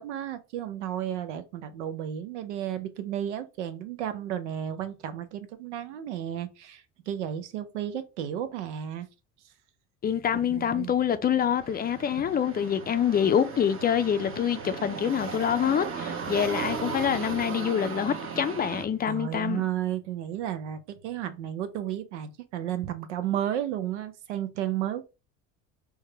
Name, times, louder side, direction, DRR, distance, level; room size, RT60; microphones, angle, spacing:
voice 1, 0.0-9.1 10.3-10.9 19.1-25.0, right 10 dB, 90° right, 0.7 m, -33 dB
voice 2, 10.0-19.7, left 8 dB, 25° left, 0.4 m, -26 dB
sound 1, 11.6-18.8, right 5 dB, 40° right, 1.1 m, -36 dB
4.7 x 2.2 x 3.2 m
hypercardioid pair, 80°, 34 cm